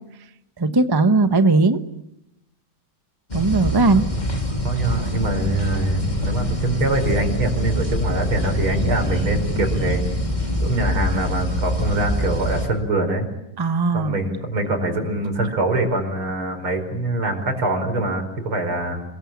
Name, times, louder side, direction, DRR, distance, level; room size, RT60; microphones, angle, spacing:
voice 1, 0.6-1.8 3.3-4.1 13.6-14.2, right 3 dB, 15° right, 9 dB, 0.8 m, -18 dB
sound 1, 3.3-12.7, equal, 20° left, 3.5 m, -24 dB
voice 2, 4.6-10.1 10.6-13.3 13.9-19.0, right 2 dB, 80° right, 6 dB, 5.7 m, -24 dB
27.0 x 22.0 x 8.8 m, 0.86 s
omnidirectional pair, 2.3 m